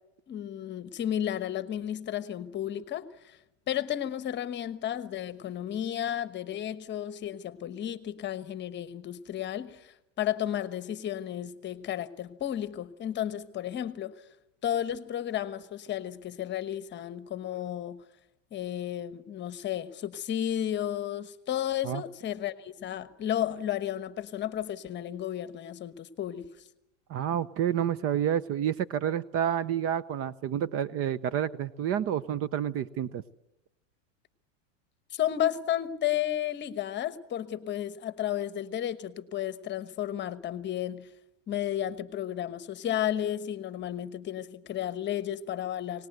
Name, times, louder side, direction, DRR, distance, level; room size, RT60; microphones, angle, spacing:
voice 1, 0.3-3.4 3.7-14.3 14.6-18.0 18.5-26.5 35.1-41.1 41.5-46.1, left 11 dB, 30° left, 1.2 m, -33 dB
voice 2, 27.1-33.2, right 9 dB, 35° right, 0.8 m, -29 dB
24.5 x 19.0 x 8.0 m
supercardioid pair, 130°, 38 cm